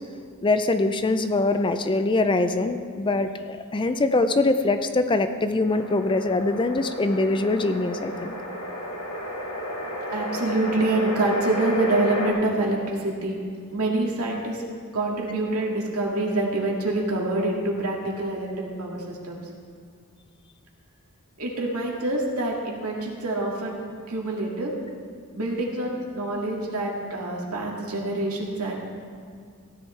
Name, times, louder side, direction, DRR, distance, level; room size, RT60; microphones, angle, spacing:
voice 1, 0.4-8.4, left 2 dB, 20° left, 9 dB, 0.4 m, -23 dB
sound 1, 5.7-12.3, equal, 70° left, 1.9 m, -32 dB
voice 2, 10.1-13.4 13.7-14.6 14.9-19.5 21.4-24.7 25.3-28.8, right 2 dB, 85° right, -2 dB, 2.1 m, -26 dB
15.5 x 10.5 x 3.3 m, 2.3 s
head